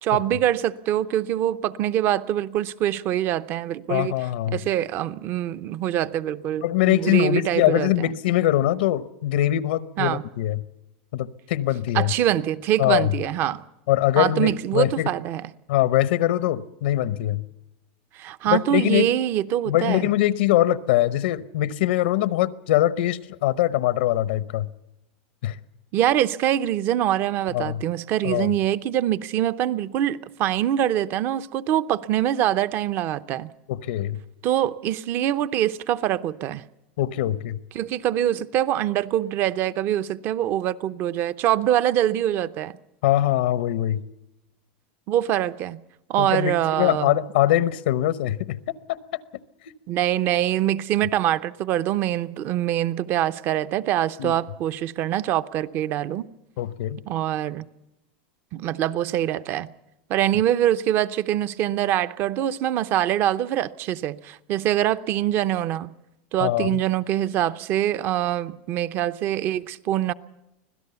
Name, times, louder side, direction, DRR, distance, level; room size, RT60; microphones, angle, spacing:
voice 1, 0.0-4.1 4.5-8.1 10.0-10.2 11.9-13.6 14.2-15.4 18.1-20.1 25.9-33.5 34.4-36.6 37.7-42.8 45.1-45.8 46.1-47.2 49.9-56.3 57.1-57.7 58.5-59.7 60.1-65.9 66.3-70.1, right 12 dB, 40° right, 0.7 m, -24 dB
voice 2, 3.9-4.6 6.6-10.6 11.1-12.1 12.8-13.1 13.9-15.1 15.7-17.4 18.5-19.1 19.7-24.7 25.4-25.6 27.5-27.8 28.2-28.5 33.7-34.2 37.0-37.6 43.0-44.0 46.2-48.6 48.9-49.0 54.2-54.3 56.6-57.0 66.4-66.8, left 13 dB, 80° left, 0.8 m, -22 dB
25.0 x 17.0 x 7.0 m
supercardioid pair, 140°, 5 cm